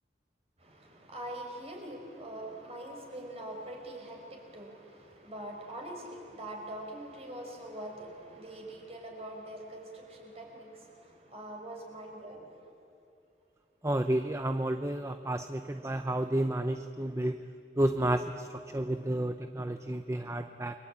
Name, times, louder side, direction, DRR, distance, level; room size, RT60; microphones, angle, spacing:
voice 1, 0.6-12.4, right 1 dB, 35° right, 1 dB, 5.5 m, -43 dB
voice 2, 13.8-17.3 17.8-18.5 18.7-20.7, right 1 dB, 15° right, 8 dB, 0.7 m, -31 dB
29.5 x 23.0 x 8.7 m, 2.5 s
head